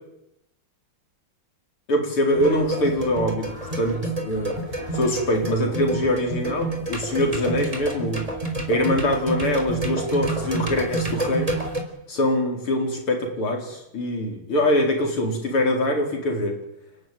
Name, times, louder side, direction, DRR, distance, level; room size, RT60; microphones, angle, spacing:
voice 1, 1.9-3.5 3.8-4.6 4.9-8.2 8.7-11.5 12.1-16.5, left 1 dB, 75° left, 2 dB, 5.3 m, -23 dB
sound 1, 2.3-11.8, right 2 dB, 15° right, 3.7 m, -29 dB
29.0 x 12.5 x 9.2 m, 0.83 s
omnidirectional pair, 2.4 m